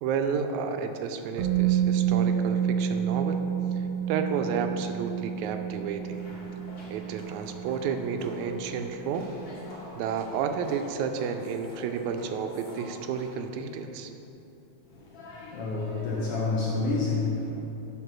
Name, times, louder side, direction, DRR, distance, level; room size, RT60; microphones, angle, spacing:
voice 1, 0.0-3.4 3.8-6.2 6.9-9.3 10.0-14.1, right 6 dB, 80° right, 6 dB, 1.9 m, -31 dB
Musical instrument, 1.4-9.3 9.6-9.7, right 9 dB, 65° right, 1.5 m, -29 dB
sound 1, 6.1-13.3, left 1 dB, 40° left, 2.2 m, -48 dB
voice 2, 14.9-17.5, left 3 dB, 75° left, -4 dB, 1.5 m, -29 dB
9.1 x 3.6 x 6.0 m, 2.9 s
omnidirectional pair, 3.4 m